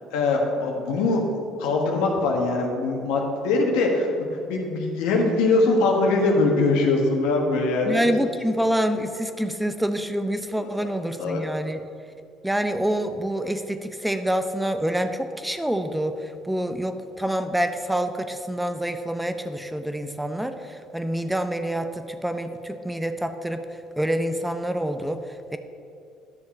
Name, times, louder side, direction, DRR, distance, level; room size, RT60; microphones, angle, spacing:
voice 1, 0.1-1.2 1.6-4.1 4.5-8.2 10.6-10.9 11.2-11.4, left 3 dB, 85° left, 1 dB, 1.3 m, -22 dB
voice 2, 7.9-11.8 12.4-23.6 24.0-25.2, right 1 dB, 5° right, 8 dB, 0.6 m, -27 dB
10.5 x 6.4 x 4.2 m, 2.5 s
supercardioid pair, 80°, 0 cm